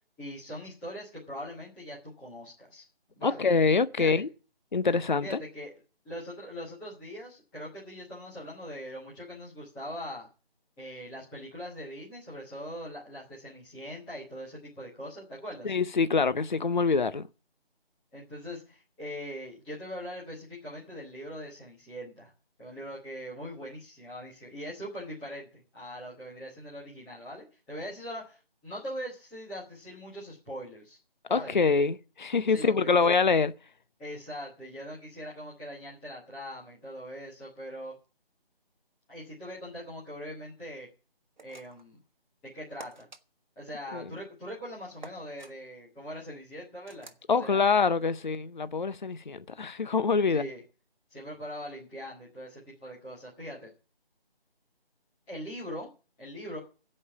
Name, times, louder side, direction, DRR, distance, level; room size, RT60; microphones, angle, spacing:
voice 1, 0.2-2.8 3.2-3.4 4.0-4.2 5.2-5.7 6.0-10.3 10.8-15.7 18.1-22.3 22.6-25.5 25.7-31.0 31.3-31.9 32.5-33.1 34.0-37.9 39.1-40.9 41.4-42.0 42.5-43.1 43.5-47.1 47.4-47.8 50.3-50.6 51.1-53.7 55.3-55.9 56.2-56.6, equal, 5° left, 1.2 m, -41 dB
voice 2, 3.2-4.3 4.7-5.4 15.6-17.2 31.3-33.5 43.9-44.0 47.3-50.5, left 4 dB, 50° left, 0.7 m, -25 dB
sound 1, 41.4-41.9 42.8-43.2 45.0-45.5 46.9-47.3, right 3 dB, 50° right, 1.4 m, -49 dB
16.5 x 5.5 x 9.7 m
figure-of-eight pair, 170°, 31 cm